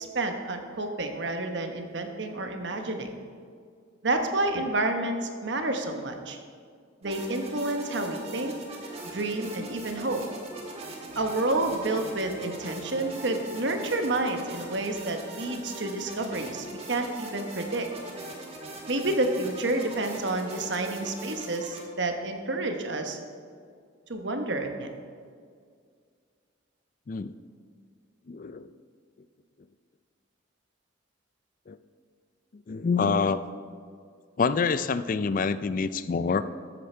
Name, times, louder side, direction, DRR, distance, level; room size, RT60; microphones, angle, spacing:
voice 1, 0.0-3.1 4.0-6.4 7.0-8.5 9.0-10.3 11.1-17.9 18.9-23.2 24.1-24.9, right 2 dB, 65° right, 5 dB, 1.2 m, -29 dB
sound 1, 7.0-21.8, right 1 dB, 30° right, 1.6 m, -41 dB
voice 2, 28.3-28.7 31.7-31.8 32.5-33.4 34.4-36.4, left 5 dB, 45° left, 14 dB, 0.4 m, -26 dB
13.5 x 8.5 x 4.4 m, 2.1 s
head